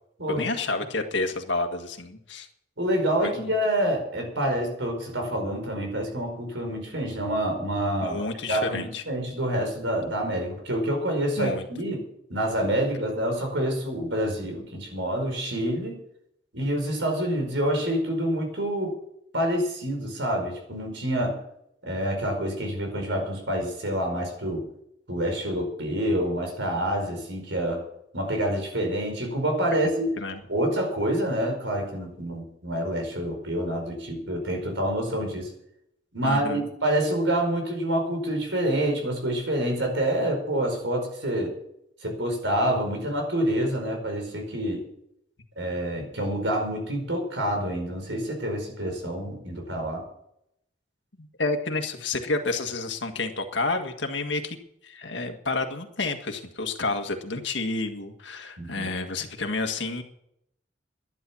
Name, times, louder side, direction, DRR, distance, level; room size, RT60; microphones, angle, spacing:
voice 1, 0.3-2.5 3.2-3.5 8.0-9.0 11.4-11.7 29.7-29.8 30.2-30.4 36.2-36.7 51.2-54.6 54.8-60.0, left 3 dB, 80° left, 5 dB, 1.8 m, -30 dB
voice 2, 2.8-8.2 8.5-12.0 12.3-16.0 16.5-19.0 19.3-21.4 21.8-24.7 25.1-27.8 28.1-30.1 30.5-35.5 36.1-41.5 42.0-44.8 45.6-50.0 58.6-58.9, right 1 dB, 90° right, 3 dB, 5.0 m, -27 dB
11.5 x 11.5 x 7.2 m, 0.75 s
head